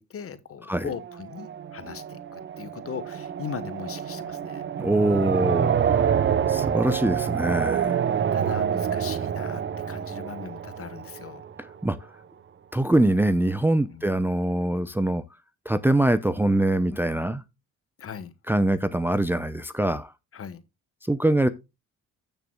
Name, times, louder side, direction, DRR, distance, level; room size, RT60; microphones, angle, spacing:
voice 1, 0.0-4.7 8.1-11.4 13.9-14.2 18.0-18.3 20.3-20.6, left 7 dB, 50° left, 1.2 m, -39 dB
sound 1, 0.9-11.7, right 8 dB, 40° right, 0.8 m, -27 dB
voice 2, 4.8-6.0 6.5-8.0 11.8-12.0 12.7-15.2 15.7-17.4 18.5-20.1 21.1-21.5, right 1 dB, 5° right, 0.5 m, -23 dB
16.0 x 6.8 x 2.2 m
cardioid pair, 90°, 30 cm